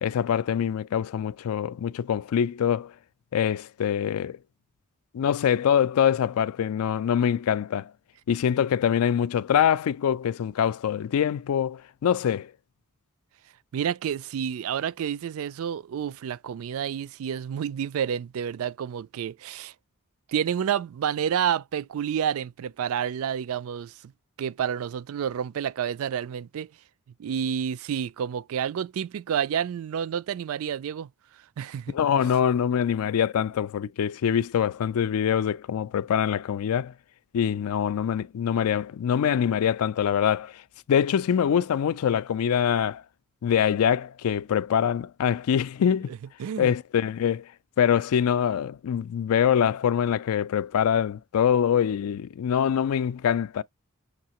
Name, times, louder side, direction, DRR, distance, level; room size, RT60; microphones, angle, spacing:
voice 1, 0.0-2.9 3.3-4.4 5.1-7.9 8.3-12.5 31.9-36.9 37.3-40.6 40.9-43.0 43.4-46.1 46.6-47.4 47.8-53.6, left 8 dB, 75° left, 0.3 m, -24 dB
voice 2, 13.7-19.7 20.3-24.1 24.4-26.7 27.2-31.1 31.6-32.0 46.4-46.7, right 8 dB, 65° right, 0.3 m, -29 dB
6.5 x 2.7 x 2.9 m
head